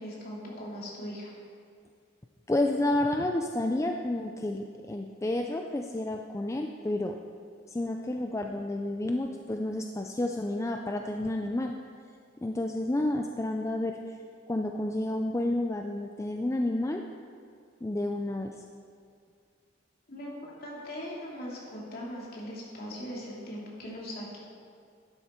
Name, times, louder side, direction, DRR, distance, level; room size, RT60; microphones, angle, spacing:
voice 1, 0.0-1.3 20.1-24.4, equal, 50° left, -4 dB, 2.9 m, -40 dB
voice 2, 2.5-7.2 7.7-11.7 12.4-14.0 14.5-17.0 17.8-18.5, left 1 dB, 15° left, 3 dB, 0.4 m, -30 dB
11.5 x 10.0 x 4.5 m, 2.2 s
head